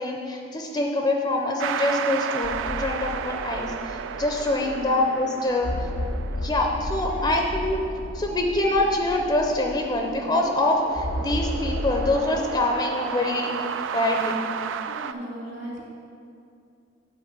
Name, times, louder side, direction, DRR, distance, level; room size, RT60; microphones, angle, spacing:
voice 1, 0.0-5.7 6.4-7.8 8.1-13.5 13.9-14.4, left 2 dB, 20° left, 2 dB, 0.5 m, -25 dB
sound 1, 1.6-15.1, right 7 dB, 85° right, 0.3 m, -34 dB
sound 2, 2.4-5.0 5.6-10.3 11.0-12.2, left 1 dB, 70° left, 0.9 m, -33 dB
voice 2, 4.6-5.1 7.0-7.3 14.9-15.8, equal, 65° right, -4 dB, 2.4 m, -36 dB
9.0 x 4.1 x 7.3 m, 2.5 s
head